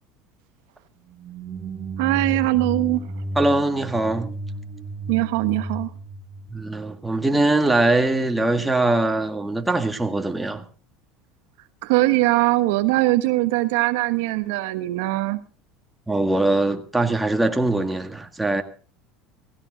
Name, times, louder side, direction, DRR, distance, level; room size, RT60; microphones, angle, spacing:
sound 1, 1.1-7.2, right 1 dB, 30° right, 2.2 m, -33 dB
voice 1, 2.0-3.0 5.1-5.9 11.8-15.4, right 19 dB, 80° right, 1.1 m, -21 dB
voice 2, 3.4-4.3 6.5-10.6 16.1-18.6, right 2 dB, 10° right, 1.8 m, -22 dB
17.0 x 16.0 x 4.0 m
supercardioid pair, 110°, 0 cm